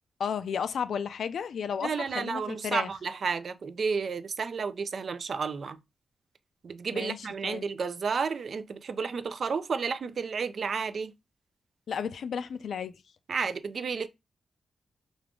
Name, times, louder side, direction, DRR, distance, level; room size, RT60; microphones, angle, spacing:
voice 1, 0.2-2.9 6.9-7.7 11.9-12.9, left 7 dB, 80° left, 0.4 m, -33 dB
voice 2, 1.8-5.8 6.6-11.1 13.3-14.1, right 5 dB, 60° right, 0.4 m, -31 dB
5.0 x 2.3 x 3.7 m
wide cardioid pair, 100°, 0 cm